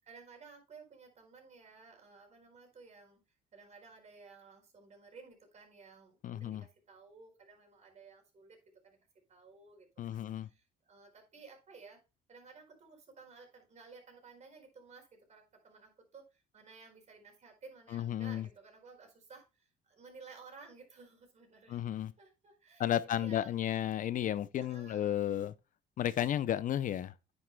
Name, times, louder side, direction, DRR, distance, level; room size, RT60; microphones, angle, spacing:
voice 1, 0.0-3.2 3.5-9.0 9.3-12.0 12.3-21.8 22.2-23.8 24.6-25.2, right 4 dB, 40° right, 4.5 m, -56 dB
voice 2, 6.2-6.6 10.0-10.5 17.9-18.5 21.7-22.1 22.8-25.5 26.0-27.1, left 11 dB, 50° left, 0.6 m, -33 dB
9.6 x 9.4 x 2.3 m
cardioid pair, 110°, 17 cm